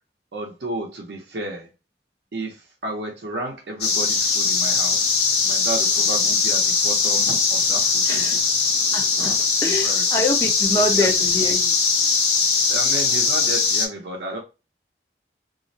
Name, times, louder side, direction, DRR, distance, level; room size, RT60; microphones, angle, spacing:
voice 1, 0.3-1.7 2.3-5.2 5.4-8.3 9.2-9.4 9.6-10.0 10.8-11.1 12.7-14.4, right 2 dB, 75° right, 0.6 m, -32 dB
sound 1, 3.8-13.9, left 5 dB, 65° left, 0.6 m, -20 dB
voice 2, 8.0-8.4 8.9-9.3 9.6-11.7, left 1 dB, 20° left, 0.6 m, -25 dB
2.4 x 2.0 x 2.6 m
head